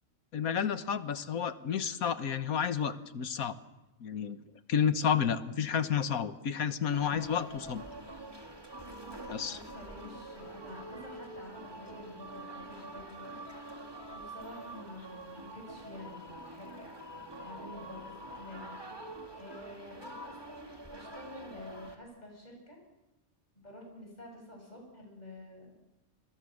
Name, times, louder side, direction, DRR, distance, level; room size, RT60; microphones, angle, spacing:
voice 1, 0.3-3.5 4.0-4.4 4.7-7.8 9.3-9.6, left 7 dB, 90° left, 11 dB, 1.6 m, -31 dB
sound 1, 6.9-22.0, right 1 dB, 15° right, 2.3 m, -46 dB
voice 2, 8.8-13.6 14.1-18.7 19.3-22.8 23.5-25.8, left 1 dB, 30° left, 1 dB, 7.7 m, -49 dB
29.0 x 22.0 x 6.5 m, 0.98 s
omnidirectional pair, 1.5 m